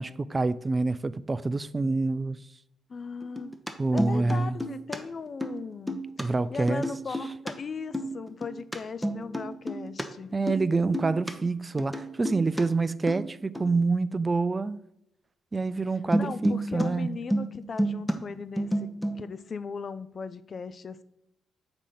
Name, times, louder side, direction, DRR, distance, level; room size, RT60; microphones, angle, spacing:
voice 1, 0.0-2.4 3.8-4.6 6.2-6.8 10.3-14.8 15.5-17.1, right 3 dB, 30° right, 0.3 m, -27 dB
voice 2, 2.9-3.5 3.9-10.3 16.1-21.0, left 5 dB, 50° left, 0.3 m, -38 dB
sound 1, 3.2-3.7 4.0-5.0 5.3-5.6 5.9-6.2 6.7-7.5 7.8-8.8 9.0-10.0 10.3-10.7 10.9-11.3 11.8-12.6 13.1-13.3 13.6-13.7 16.1-16.9 17.1-18.2 18.4-19.3, right 1 dB, 5° left, 0.8 m, -30 dB
4.8 x 3.7 x 5.7 m
hypercardioid pair, 40°, 0 cm